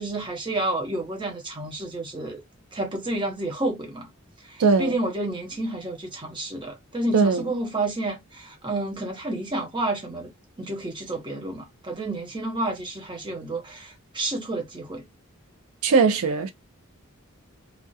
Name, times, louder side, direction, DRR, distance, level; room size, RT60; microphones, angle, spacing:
voice 1, 0.0-2.4 2.7-4.1 4.4-10.3 10.6-15.0, right 2 dB, 20° right, 0.8 m, -30 dB
voice 2, 4.6-4.9 7.1-7.4 15.8-16.5, right 4 dB, 80° right, 0.4 m, -19 dB
2.3 x 2.1 x 2.6 m
head